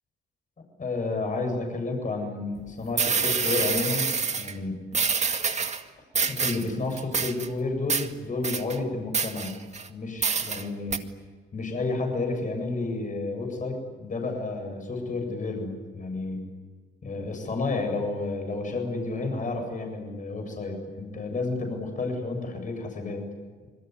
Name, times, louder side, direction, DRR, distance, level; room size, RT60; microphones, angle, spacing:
voice 1, 0.8-4.8 6.3-9.5 9.9-11.0 11.5-16.4 17.0-23.2, left 3 dB, 40° left, 4 dB, 7.9 m, -31 dB
sound 1, 2.6-2.7 3.0-4.5 4.9-5.8 6.1-6.7 7.0-7.5 7.9-8.1 8.4-8.8 9.1-9.9 10.2-10.6 10.9-11.0, right 5 dB, 35° right, 2.0 m, -26 dB
27.0 x 21.5 x 9.7 m, 1.4 s
cardioid pair, 90°, 20 cm